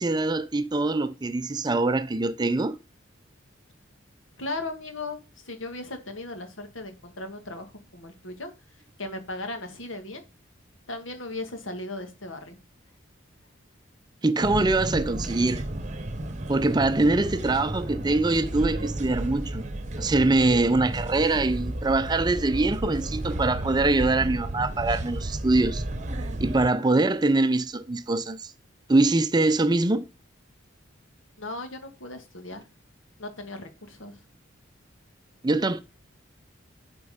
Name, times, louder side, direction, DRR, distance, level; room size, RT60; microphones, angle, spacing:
voice 1, 0.0-2.8 14.2-15.6 16.5-19.7 20.0-25.8 26.4-28.5 28.9-30.0 35.4-35.8, right 2 dB, 20° right, 0.5 m, -23 dB
voice 2, 4.4-5.2 5.4-8.5 9.0-10.2 10.9-12.6 31.4-32.6 33.2-34.2, left 2 dB, 90° left, 1.9 m, -37 dB
sound 1, 14.4-26.7, right 1 dB, 35° right, 1.0 m, -32 dB
11.0 x 4.5 x 5.1 m
head